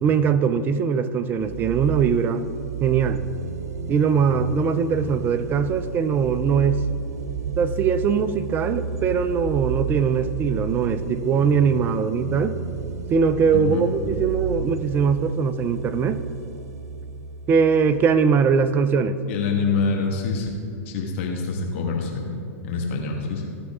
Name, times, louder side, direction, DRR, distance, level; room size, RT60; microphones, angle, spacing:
voice 1, 0.0-2.4 2.8-3.2 3.9-6.8 7.6-12.6 13.1-16.2 17.5-19.2, right 6 dB, 25° right, 12 dB, 0.5 m, -21 dB
sound 1, 1.4-18.8, right 6 dB, 80° right, 0.6 m, -32 dB
voice 2, 13.5-13.9 19.3-20.5 20.8-23.5, left 4 dB, 55° left, 0 dB, 1.4 m, -26 dB
15.5 x 5.9 x 3.6 m, 2.5 s
hypercardioid pair, 120°, 8 cm